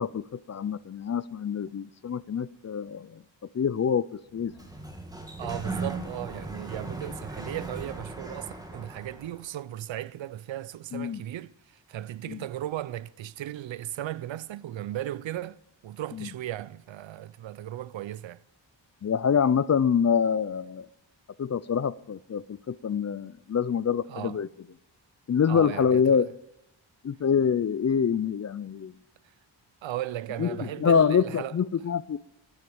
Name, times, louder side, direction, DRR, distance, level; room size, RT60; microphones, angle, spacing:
voice 1, 0.0-3.2 3.5-4.5 10.9-11.2 12.3-12.4 16.1-16.3 19.0-20.9 21.4-24.5 25.3-26.3 27.0-28.9 30.4-32.2, left 7 dB, 40° left, 0.4 m, -26 dB
Sliding door, 4.3-9.4, right 2 dB, 10° right, 1.7 m, -38 dB
voice 2, 5.4-18.4 24.1-24.4 25.5-26.3 29.8-31.5, right 13 dB, 80° right, 0.6 m, -36 dB
10.5 x 9.5 x 8.4 m
wide cardioid pair, 110°, 45 cm